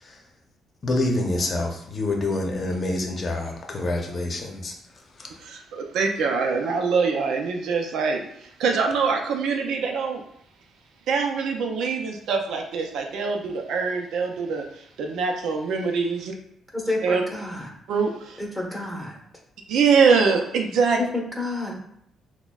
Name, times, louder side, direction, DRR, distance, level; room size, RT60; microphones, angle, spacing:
voice 1, 0.8-4.7 5.2-5.3, left 2 dB, 40° left, 1 dB, 0.7 m, -26 dB
voice 2, 5.4-10.2 11.1-16.3 17.0-17.2 17.9-18.4 19.7-21.0, right 5 dB, 80° right, 3 dB, 0.5 m, -24 dB
voice 3, 16.7-17.6 18.6-19.1 21.4-21.7, left 2 dB, 5° right, -1 dB, 1.2 m, -29 dB
5.9 x 2.2 x 2.3 m, 0.71 s
cardioid pair, 90°, 0 cm